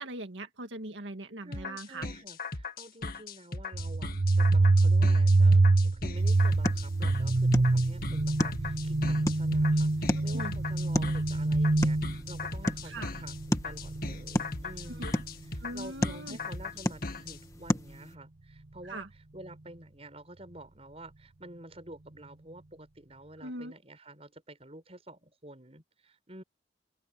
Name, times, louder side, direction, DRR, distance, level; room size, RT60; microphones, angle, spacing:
voice 1, 0.0-2.1 10.1-10.5 12.8-13.1 15.0-15.2 15.6-16.4 18.8-19.1 23.4-23.7, right 1 dB, 85° right, 1.9 m, -40 dB
voice 2, 1.4-15.2 15.5-19.1 19.3-26.4, right 1 dB, 35° right, 6.4 m, -49 dB
sound 1, 1.5-17.4, left 3 dB, 50° left, 2.0 m, -38 dB
sound 2, 3.7-15.3, right 2 dB, 60° right, 0.9 m, -25 dB
sound 3, 6.1-18.1, left 1 dB, 20° left, 1.5 m, -36 dB
open air
head